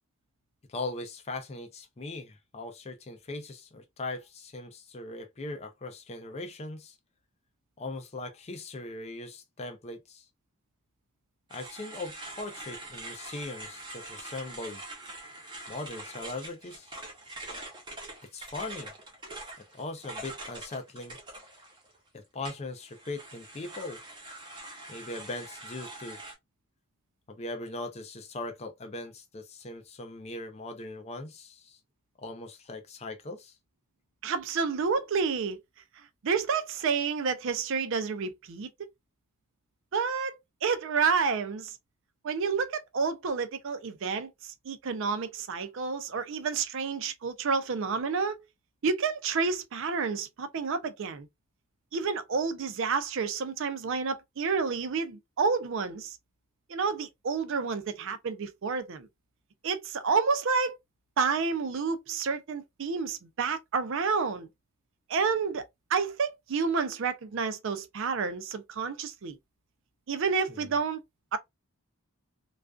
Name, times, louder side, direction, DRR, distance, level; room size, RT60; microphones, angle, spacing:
voice 1, 0.7-6.9 7.8-10.2 11.5-14.8 15.7-16.9 18.3-18.9 19.7-21.2 22.1-24.0 24.9-26.2 27.3-31.8 32.2-33.5 70.5-70.7, left 2 dB, 30° left, 0.4 m, -39 dB
sound 1, 11.5-22.0 22.4-26.3, right 2 dB, 20° right, 0.7 m, -44 dB
voice 2, 34.2-35.6 36.2-38.7 39.9-41.8 42.2-48.4 48.8-51.3 51.9-56.2 56.7-59.1 59.6-60.8 61.2-64.5 65.1-65.6 65.9-69.4 70.1-71.0 71.3-71.4, right 5 dB, 60° right, 0.4 m, -29 dB
2.4 x 2.3 x 2.2 m
head